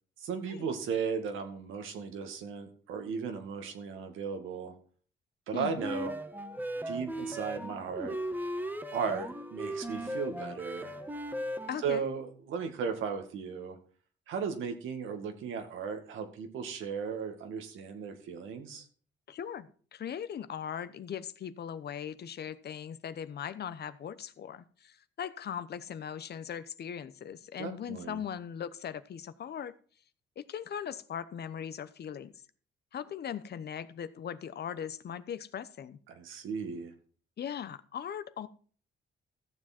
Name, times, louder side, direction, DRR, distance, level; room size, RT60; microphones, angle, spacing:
voice 1, 0.2-4.7 5.5-6.1 6.9-8.2 8.9-10.9 11.8-13.8 14.3-18.9 27.6-28.2 36.1-36.9, right 6 dB, 80° right, 6 dB, 2.1 m, -36 dB
sound 1, 5.8-11.9, right 1 dB, 10° right, 1.4 m, -37 dB
voice 2, 11.7-12.0 19.3-29.7 30.4-32.3 32.9-36.0 37.4-38.5, left 8 dB, 55° left, 13 dB, 0.9 m, -39 dB
14.0 x 7.4 x 4.4 m, 0.43 s
cardioid pair, 90°, 20 cm